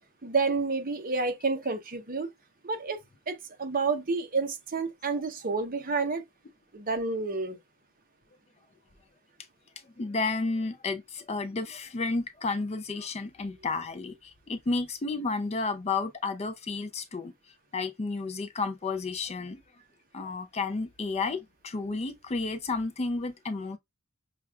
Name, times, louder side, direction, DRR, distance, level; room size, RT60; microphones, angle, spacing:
voice 1, 0.2-2.3 2.6-3.0 3.3-6.2 6.7-7.6, right 4 dB, 40° right, 0.7 m, -29 dB
voice 2, 10.0-17.3 17.7-19.6 20.1-23.8, left 3 dB, 30° left, 0.4 m, -32 dB
5.9 x 2.2 x 2.3 m
head